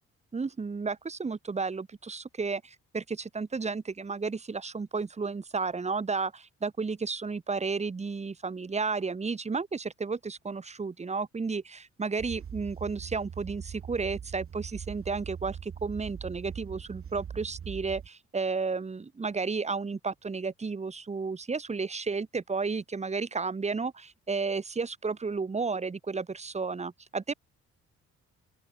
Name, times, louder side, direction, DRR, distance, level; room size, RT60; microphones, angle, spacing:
voice 1, 0.3-27.3, right 4 dB, 20° right, 1.1 m, -32 dB
sound 1, 12.2-18.1, right 8 dB, 45° right, 1.8 m, -41 dB
open air
cardioid pair, 90°, 30 cm